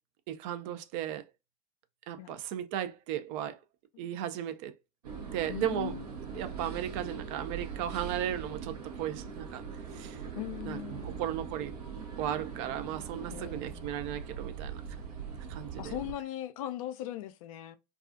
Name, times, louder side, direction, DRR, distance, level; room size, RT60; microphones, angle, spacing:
voice 1, 0.3-1.2 2.1-3.6 4.0-4.7 5.3-6.0 6.3-9.6 9.9-10.2 10.6-11.7 12.2-14.8 15.5-15.9, right 10 dB, 50° right, 0.4 m, -35 dB
sound 1, 5.0-16.1, right 6 dB, 75° right, 0.7 m, -41 dB
voice 2, 5.5-6.5 10.4-11.3 13.3-13.9 15.8-17.8, left 13 dB, 60° left, 0.4 m, -40 dB
2.4 x 2.3 x 2.4 m
figure-of-eight pair, 85°, 20 cm